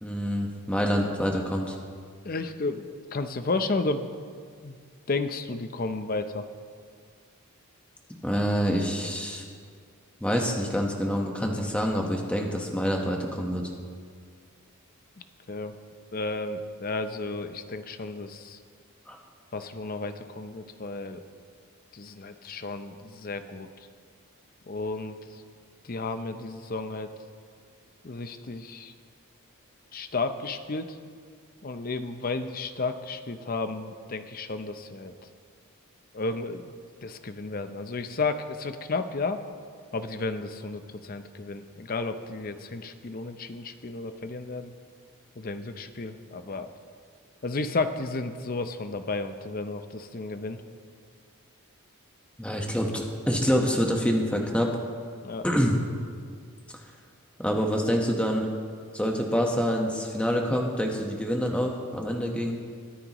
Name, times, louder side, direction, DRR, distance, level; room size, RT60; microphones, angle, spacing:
voice 1, 0.0-1.8 8.2-9.4 10.2-13.6 19.1-19.2 52.4-54.8 55.4-55.8 56.7-56.8 57.4-58.5 58.9-62.6, equal, 5° left, 1 dB, 1.1 m, -26 dB
voice 2, 2.2-4.1 4.6-4.8 5.1-6.5 15.5-15.8 16.1-18.6 19.5-21.2 21.9-23.7 24.7-25.4 25.8-27.1 28.0-28.9 29.9-31.0 31.6-35.1 36.1-36.7 37.0-39.4 39.9-44.7 45.4-46.7 47.4-50.6 55.2-55.5, left 3 dB, 40° left, 9 dB, 0.6 m, -32 dB
22.0 x 10.0 x 3.0 m, 2.1 s
head